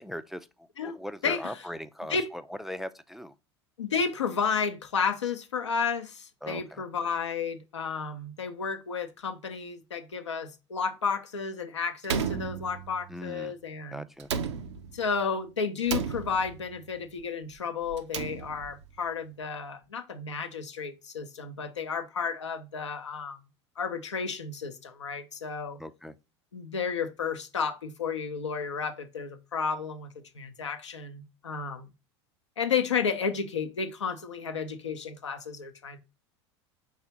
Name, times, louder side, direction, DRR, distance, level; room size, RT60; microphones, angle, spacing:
voice 1, 0.0-3.3 6.4-6.8 13.1-13.5 13.9-14.3 25.8-26.1, left 1 dB, ahead, 0.3 m, -39 dB
voice 2, 1.2-1.6 2.1-2.3 3.8-14.0 14.9-23.4 23.8-25.8 26.5-31.9 32.6-36.0, left 6 dB, 85° left, 0.6 m, -32 dB
Slam, 12.0-13.2 14.2-15.1 15.9-16.8 17.9-18.8, right 6 dB, 80° right, 0.5 m, -33 dB
4.9 x 3.4 x 2.7 m
hypercardioid pair, 80°, 15 cm